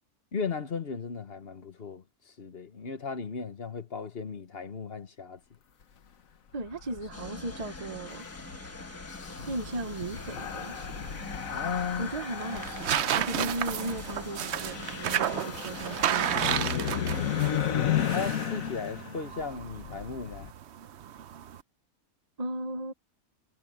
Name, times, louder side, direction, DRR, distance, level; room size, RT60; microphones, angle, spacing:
voice 1, 0.3-2.0 2.4-5.4 11.5-12.1 18.1-20.5, left 5 dB, 45° left, 1.3 m, -36 dB
voice 2, 6.5-8.3 9.5-10.9 12.0-17.0 22.4-22.9, right 2 dB, 30° right, 0.9 m, -36 dB
sound 1, 6.6-20.5, left 9 dB, 70° left, 1.5 m, -34 dB
sound 2, 7.1-17.6, left 1 dB, 10° left, 1.0 m, -45 dB
sound 3, 9.4-21.6, right 10 dB, 60° right, 0.8 m, -33 dB
omnidirectional pair, 1.5 m